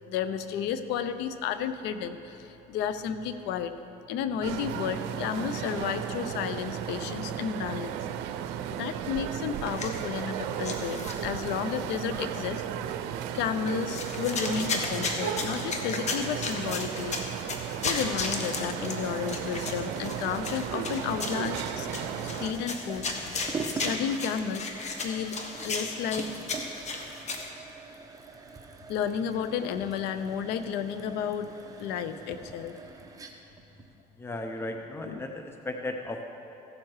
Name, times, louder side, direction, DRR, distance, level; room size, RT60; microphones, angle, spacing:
voice 1, 0.1-3.7 4.1-8.0 8.7-12.6 13.3-17.2 17.5-21.9 22.4-23.2 23.7-24.7 25.0-25.4 25.6-26.3 28.9-31.5 31.8-32.7 35.0-35.2, left 8 dB, 80° left, 11 dB, 0.7 m, -32 dB
sound 1, 4.4-22.5, right 9 dB, 85° right, 0.6 m, -35 dB
sound 2, 9.6-10.4 10.6-11.7 12.2-12.3 13.5-27.5, left 3 dB, 40° left, 1.3 m, -35 dB
sound 3, 17.7-35.4, right 4 dB, 20° right, 1.1 m, -44 dB
voice 2, 34.2-36.2, left 2 dB, 15° left, 4 dB, 0.7 m, -35 dB
15.5 x 7.3 x 4.8 m, 2.9 s
cardioid pair, 100°, 17 cm